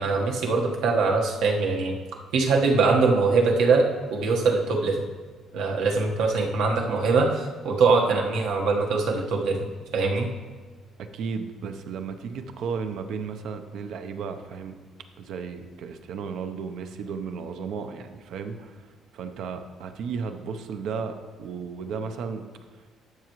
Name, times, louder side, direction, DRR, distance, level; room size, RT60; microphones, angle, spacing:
voice 1, 0.0-1.9 2.3-3.9 4.1-5.0 5.5-10.3, right 4 dB, 80° right, 1 dB, 1.3 m, -22 dB
voice 2, 11.0-14.7 15.2-22.4, right 5 dB, 60° right, 7 dB, 0.7 m, -34 dB
12.5 x 6.8 x 3.1 m, 1.5 s
cardioid pair, 180°, 0 cm